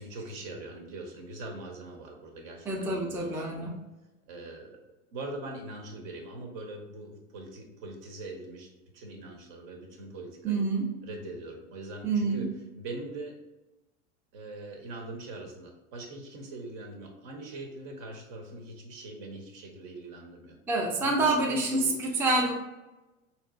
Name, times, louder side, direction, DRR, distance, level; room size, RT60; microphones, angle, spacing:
voice 1, 0.0-3.7 4.3-4.8 5.1-8.7 8.9-10.7 11.0-12.5 12.7-13.3 14.3-20.6 21.0-21.9, right 2 dB, 60° right, 2 dB, 1.1 m, -42 dB
voice 2, 2.7-3.8 10.4-10.9 12.0-12.4 20.7-22.5, right 2 dB, 5° right, -1 dB, 0.4 m, -27 dB
4.1 x 2.9 x 2.4 m, 1.1 s
hypercardioid pair, 110°, 39 cm